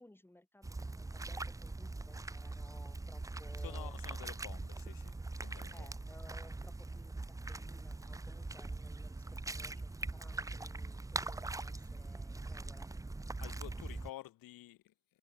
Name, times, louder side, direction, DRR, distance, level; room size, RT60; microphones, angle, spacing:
voice 1, 0.0-4.0 5.7-12.9, left 1 dB, 5° left, 5.8 m, -60 dB
sound 1, 0.6-14.1, right 2 dB, 10° right, 0.7 m, -42 dB
voice 2, 3.6-5.9 13.4-14.9, left 15 dB, 80° left, 2.7 m, -51 dB
cardioid pair, 120°, 34 cm